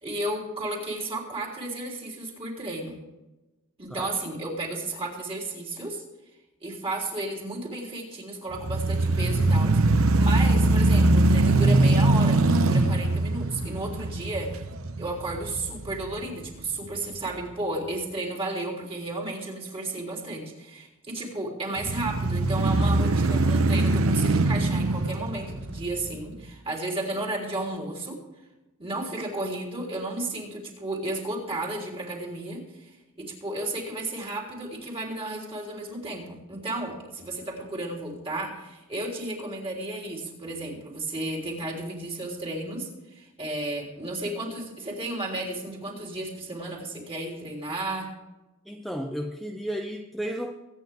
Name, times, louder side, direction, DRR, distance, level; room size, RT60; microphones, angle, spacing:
voice 1, 0.0-3.0 3.8-6.0 6.6-14.7 15.0-28.2 28.8-48.1, right 2 dB, 25° right, -2 dB, 3.4 m, -33 dB
sound 1, 8.5-16.7 17.1-17.2 21.8-26.3, right 2 dB, 70° right, 0.9 m, -22 dB
voice 2, 48.7-50.5, equal, ahead, 3 dB, 0.6 m, -33 dB
23.5 x 9.3 x 3.5 m, 1.1 s
head